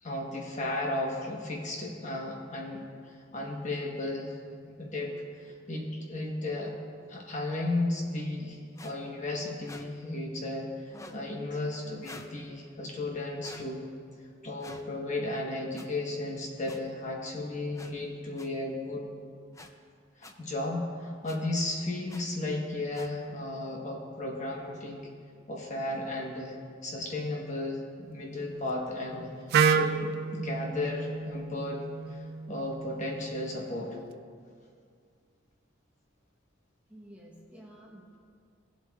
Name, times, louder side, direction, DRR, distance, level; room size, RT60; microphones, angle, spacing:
voice 1, 0.0-4.4 4.6-6.7 7.1-13.9 14.4-19.1 20.2-25.0 25.5-26.5 26.8-29.3 29.8-34.0, left 2 dB, 35° left, -1 dB, 1.2 m, -34 dB
sound 1, 8.8-8.9 9.6-9.9 10.9-11.2 12.0-12.3 13.4-13.7 14.6-14.8 15.7-15.9 16.7-16.8 17.7-17.9 18.4-18.5 19.5-19.7 20.2-20.3 21.2-21.4 22.1-22.2 22.9-23.1, left 2 dB, 15° left, 0.4 m, -47 dB
Wind instrument woodwind instrument, 29.5-33.4, right 6 dB, 50° right, 0.3 m, -29 dB
voice 2, 36.9-38.2, right 1 dB, 5° right, -4 dB, 1.0 m, -51 dB
17.0 x 7.7 x 2.4 m, 2.2 s
head